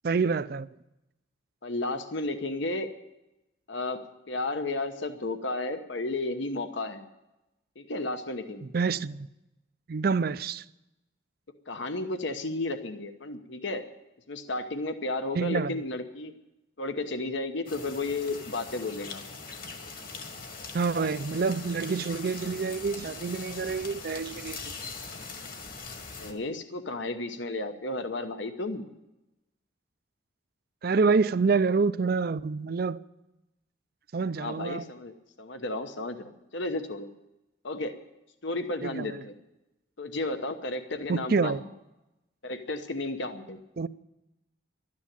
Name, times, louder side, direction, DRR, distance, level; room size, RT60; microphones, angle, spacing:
voice 1, 0.0-0.7 8.7-9.3 9.9-10.6 15.3-15.8 20.7-24.7 30.8-33.0 34.1-34.8 38.8-39.2 41.1-41.6 43.8-43.9, right 4 dB, 50° right, 0.4 m, -27 dB
voice 2, 1.6-2.9 3.7-7.0 7.8-8.6 11.7-13.8 14.3-16.3 16.8-19.2 26.2-28.9 34.4-37.1 37.6-37.9 38.4-39.4 40.0-41.7 42.4-43.6, left 2 dB, 70° left, 1.0 m, -33 dB
sound 1, 17.7-26.3, left 4 dB, 45° left, 1.7 m, -41 dB
12.5 x 9.7 x 10.0 m
head